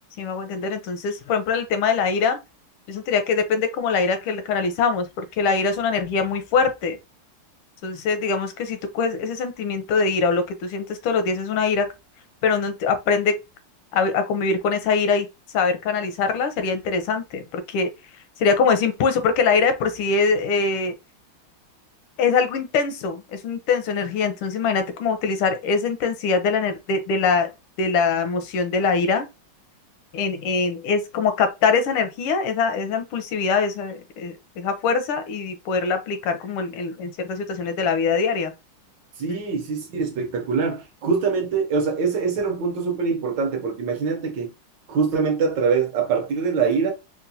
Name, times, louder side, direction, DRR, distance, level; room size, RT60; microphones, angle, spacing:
voice 1, 0.2-2.4 2.9-7.0 7.8-11.9 12.4-13.3 13.9-15.3 15.5-17.9 18.4-20.9 22.2-27.5 27.8-29.3 30.1-38.5 39.3-39.4, left 5 dB, 85° left, 1.5 m, -23 dB
voice 2, 39.2-44.5 44.9-46.9, right 5 dB, 70° right, 1.2 m, -23 dB
4.2 x 2.2 x 2.7 m
omnidirectional pair, 2.3 m